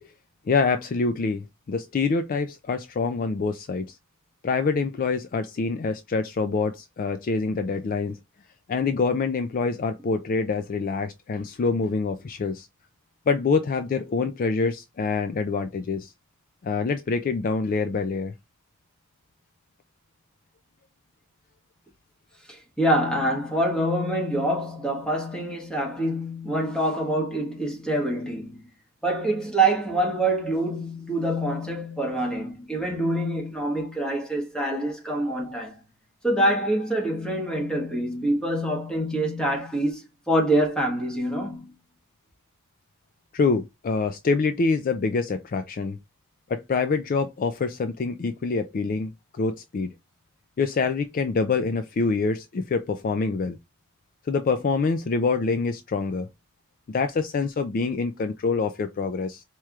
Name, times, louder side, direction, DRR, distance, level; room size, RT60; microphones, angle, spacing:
voice 1, 0.5-1.4 1.7-4.0 4.4-8.2 8.7-12.7 13.3-16.1 16.6-18.3 43.3-46.0 46.5-49.9 50.6-53.6 54.3-56.3 56.9-59.4, left 4 dB, 40° left, 0.3 m, -25 dB
voice 2, 22.5-28.6 29.0-35.8 36.2-41.7, right 1 dB, 5° left, 1.3 m, -25 dB
4.6 x 3.0 x 2.3 m
head